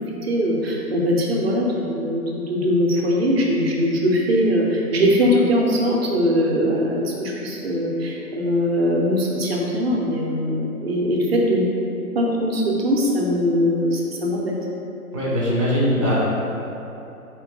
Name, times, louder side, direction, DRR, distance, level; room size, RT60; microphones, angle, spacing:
voice 1, 0.2-11.7 12.1-14.6, equal, 45° right, -2 dB, 0.7 m, -21 dB
voice 2, 15.1-16.2, equal, 25° left, -8 dB, 0.3 m, -20 dB
4.5 x 3.0 x 3.7 m, 3.0 s
figure-of-eight pair, 130°, 45 cm